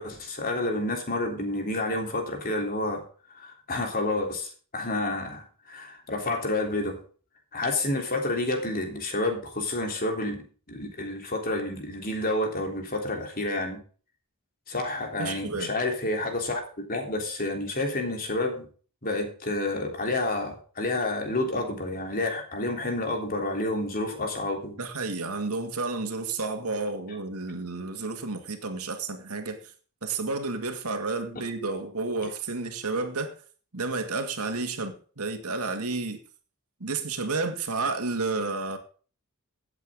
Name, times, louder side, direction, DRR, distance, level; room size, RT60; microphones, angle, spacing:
voice 1, 0.0-3.0 3.3-7.0 7.5-13.8 14.7-16.6 16.9-18.7 19.0-24.8, left 2 dB, 40° left, 3.5 m, -29 dB
voice 2, 15.2-15.7 24.8-29.7 30.0-33.3 33.7-36.2 36.8-38.8, right 3 dB, 80° right, 2.2 m, -31 dB
16.5 x 8.2 x 3.8 m
head